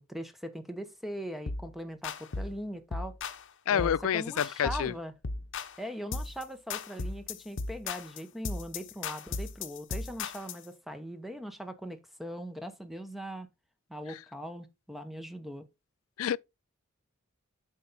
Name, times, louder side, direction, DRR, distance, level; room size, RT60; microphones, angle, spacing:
voice 1, 0.0-3.2 3.7-5.1 5.8-13.5 13.9-15.7, equal, ahead, 0.9 m, -40 dB
sound 1, 1.5-1.7 2.0-2.6 2.9-3.4 3.8-4.0 4.4-4.9 5.2-5.8 6.1-6.4 6.7-10.6, left 4 dB, 60° left, 0.8 m, -36 dB
voice 2, 3.7-4.9 16.2-16.4, left 9 dB, 90° left, 0.4 m, -28 dB
8.2 x 5.4 x 4.0 m
head